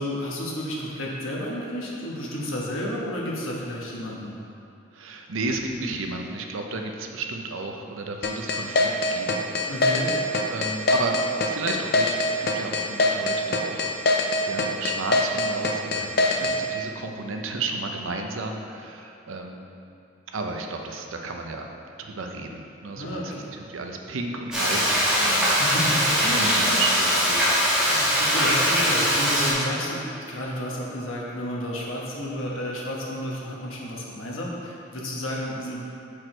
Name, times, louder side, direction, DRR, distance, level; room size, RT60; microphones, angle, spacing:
voice 1, 0.0-4.3 9.7-10.1 16.4-16.5 22.9-23.5 25.2-26.6 27.8-35.8, equal, 80° left, -3 dB, 1.2 m, -31 dB
voice 2, 4.9-9.4 10.5-19.7 20.3-21.7 22.0-25.4 26.2-27.5, right 3 dB, 75° right, 3 dB, 0.6 m, -33 dB
sound 1, 8.2-16.6, left 2 dB, 50° left, 0.5 m, -22 dB
Frying (food), 24.5-29.5, equal, 5° right, 1.3 m, -21 dB
6.1 x 4.8 x 4.4 m, 2.6 s
head